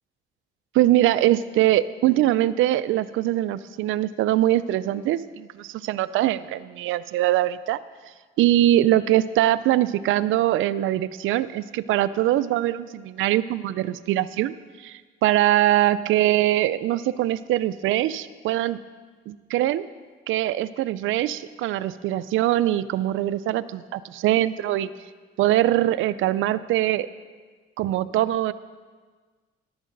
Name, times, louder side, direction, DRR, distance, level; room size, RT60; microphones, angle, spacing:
voice 1, 0.7-7.8 8.4-18.8 19.3-19.8 20.3-24.9 25.4-27.1 27.8-28.5, right 14 dB, 85° right, 16 dB, 0.5 m, -22 dB
14.0 x 12.0 x 3.9 m, 1.4 s
cardioid pair, 90°, 20 cm